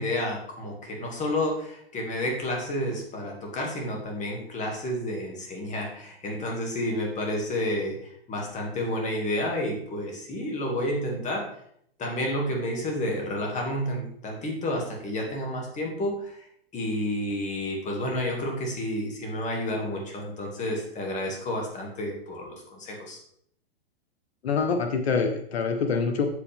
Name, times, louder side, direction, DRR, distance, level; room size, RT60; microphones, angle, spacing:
voice 1, 0.0-11.5 12.0-16.4 16.7-23.2, left 1 dB, 25° left, 0 dB, 2.6 m, -30 dB
voice 2, 24.4-26.2, left 5 dB, 80° left, 5 dB, 1.2 m, -25 dB
8.2 x 8.0 x 3.7 m, 0.67 s
hypercardioid pair, 125°, 31 cm